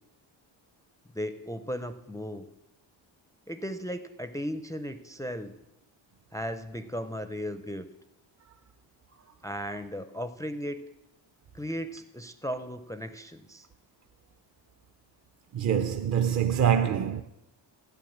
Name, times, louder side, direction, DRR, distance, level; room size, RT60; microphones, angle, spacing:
voice 1, 1.1-2.5 3.5-5.5 6.3-7.9 9.4-10.8 11.5-13.7, equal, 10° left, 0.4 m, -36 dB
voice 2, 15.5-17.2, right 8 dB, 40° right, 0.5 m, -25 dB
13.0 x 9.1 x 7.1 m
cardioid pair, 140°, 44 cm